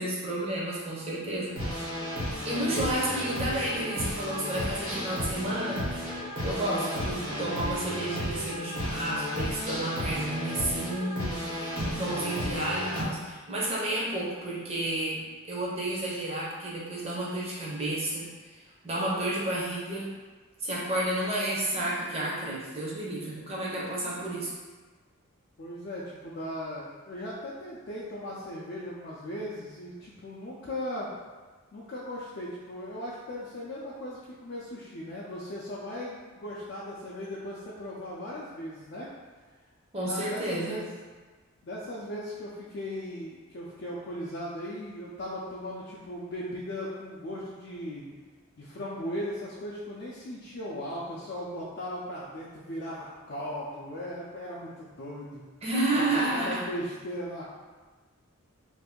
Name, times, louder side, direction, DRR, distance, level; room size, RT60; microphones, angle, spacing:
voice 1, 0.0-1.6 2.4-5.8 6.4-15.2 15.5-18.3 18.8-20.1 20.6-24.5 39.9-40.8 55.6-56.6, right 1 dB, 30° right, -5 dB, 0.7 m, -31 dB
sound 1, 1.6-13.0, equal, 85° right, 1.2 m, -33 dB
voice 2, 2.4-3.1 6.5-7.2 25.6-31.1 31.7-39.1 40.0-40.9 41.6-48.0 48.6-55.4 55.9-57.4, left 1 dB, 50° left, -7 dB, 0.4 m, -38 dB
2.6 x 2.5 x 3.6 m, 1.4 s
head